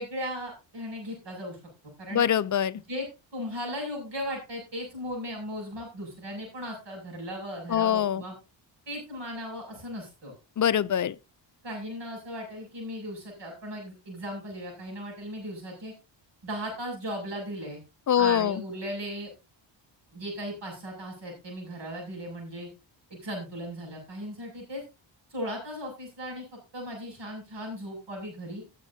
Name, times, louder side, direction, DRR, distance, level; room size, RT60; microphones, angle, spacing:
voice 1, 0.0-1.6 2.0-2.2 2.9-3.1 3.3-8.3 8.9-10.3 11.6-15.9 16.4-17.8 18.1-19.3 20.1-22.7 23.1-24.8 25.3-28.6, equal, 60° right, 6.8 m, -37 dB
voice 2, 2.1-2.8 7.7-8.2 10.6-11.2 18.1-18.6, left 9 dB, 40° left, 0.5 m, -24 dB
17.0 x 8.3 x 2.8 m
wide cardioid pair, 120°, 47 cm